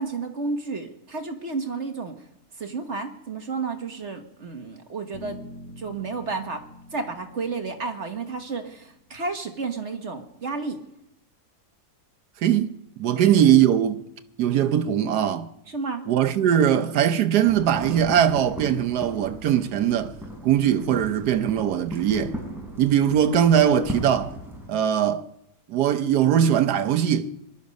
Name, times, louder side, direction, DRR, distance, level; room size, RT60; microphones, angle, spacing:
voice 1, 0.0-2.1 2.6-5.4 5.8-6.6 6.9-10.8 13.1-13.4 15.7-16.0, right 4 dB, 45° right, 1.6 m, -31 dB
Bass guitar, 5.1-9.2, left 1 dB, 35° left, 5.1 m, -46 dB
voice 2, 12.4-14.0 14.4-15.5 16.1-20.1 20.4-22.4 22.8-24.3 24.7-25.3 25.7-27.3, right 9 dB, 80° right, 1.4 m, -21 dB
sound 1, 17.5-24.7, equal, ahead, 4.8 m, -37 dB
23.0 x 12.0 x 5.2 m
omnidirectional pair, 1.7 m